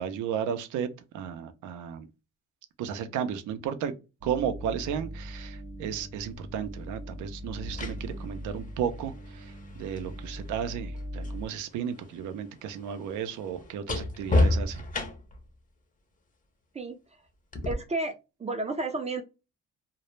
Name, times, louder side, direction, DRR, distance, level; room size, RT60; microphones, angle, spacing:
voice 1, 0.0-2.1 2.8-3.9 4.2-14.8, right 8 dB, 80° right, 10 dB, 0.5 m, -34 dB
sound 1, 4.2-11.5, equal, 45° right, 0.9 m, -40 dB
sound 2, 6.2-6.3 7.4-11.4 11.7-15.5 17.5-17.7, left 2 dB, 25° left, 0.6 m, -31 dB
voice 2, 17.6-18.1 18.4-19.2, right 2 dB, 25° right, 7 dB, 0.4 m, -31 dB
2.1 x 2.0 x 3.0 m, 0.28 s
cardioid pair, 90°, 30 cm